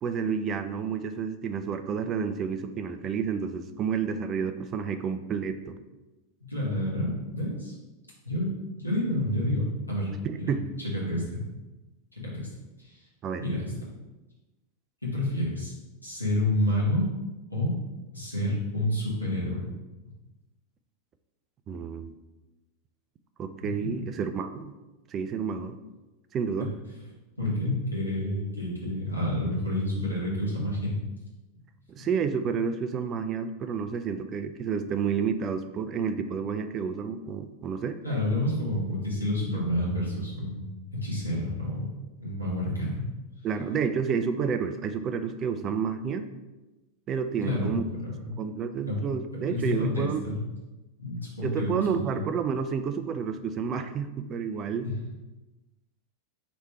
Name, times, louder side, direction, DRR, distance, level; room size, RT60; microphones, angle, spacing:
voice 1, 0.0-5.8 10.2-10.7 13.2-13.4 21.7-22.1 23.4-24.7 25.1-25.8 26.3-26.7 31.9-38.0 43.4-46.3 47.1-47.8 48.4-50.2 51.4-54.9, right 6 dB, 30° right, 9 dB, 0.3 m, -30 dB
voice 2, 6.4-7.8 8.2-8.5 8.8-10.1 10.4-10.5 10.8-11.4 12.1-12.5 12.8-13.0 13.4-13.9 15.0-15.7 16.0-17.1 17.5-17.7 18.1-19.6 23.6-24.0 26.6-26.7 27.4-30.9 32.0-32.1 38.0-41.9 42.2-43.1 47.4-48.3 48.8-49.0 49.5-50.4 51.0-52.2 54.8-54.9, left 1 dB, 85° left, -5 dB, 1.4 m, -29 dB
3.3 x 3.2 x 4.3 m, 1.1 s
figure-of-eight pair, 90°, 0 cm